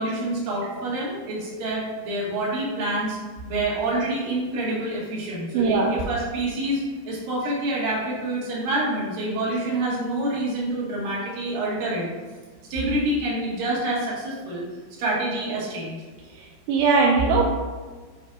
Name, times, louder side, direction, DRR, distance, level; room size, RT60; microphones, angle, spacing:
voice 1, 0.0-3.2 3.5-12.1 12.7-14.6 15.0-16.0, right 1 dB, 65° right, -5 dB, 3.1 m, -27 dB
voice 2, 5.5-5.9 16.7-17.4, right 4 dB, 85° right, -2 dB, 2.6 m, -19 dB
9.4 x 4.5 x 2.4 m, 1.4 s
omnidirectional pair, 4.5 m